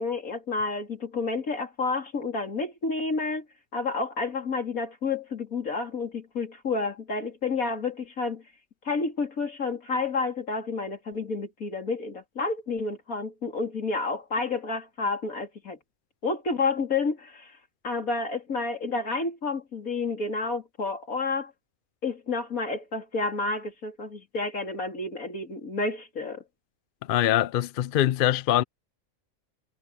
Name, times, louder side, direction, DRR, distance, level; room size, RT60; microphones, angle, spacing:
voice 1, 0.0-3.5 3.7-8.4 8.8-15.8 16.2-17.5 17.8-21.5 22.0-26.4, left 3 dB, 85° left, 3.7 m, -30 dB
voice 2, 27.1-28.6, left 12 dB, 60° left, 0.5 m, -23 dB
omnidirectional pair, 1.4 m